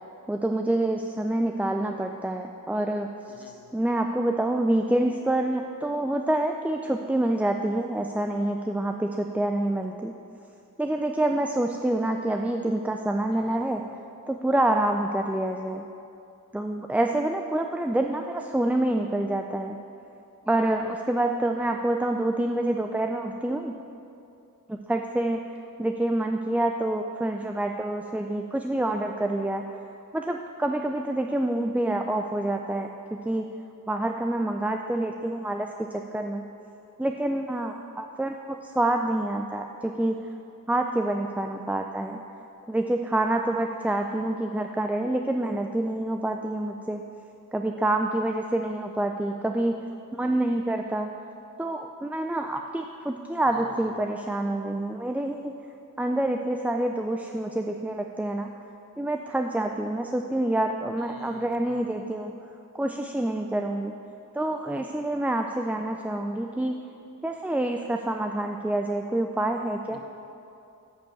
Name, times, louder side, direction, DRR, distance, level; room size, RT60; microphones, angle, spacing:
voice 1, 0.3-3.3 3.7-10.2 10.8-13.9 14.3-15.9 16.5-19.8 20.5-23.7 24.7-29.6 30.1-33.5 33.9-36.4 37.0-40.3 40.7-42.2 42.7-47.0 47.5-49.9 50.2-51.1 51.6-55.5 56.0-58.5 59.0-62.3 62.7-63.9 64.3-66.8 67.2-70.0, right 1 dB, 5° right, 4 dB, 0.3 m, -27 dB
voice 2, 3.3-3.7 13.3-13.8 53.5-53.9 61.0-61.9 69.9-70.1, left 4 dB, 85° left, 6 dB, 0.7 m, -49 dB
10.0 x 5.2 x 6.4 m, 2.7 s
wide cardioid pair, 60°, 33 cm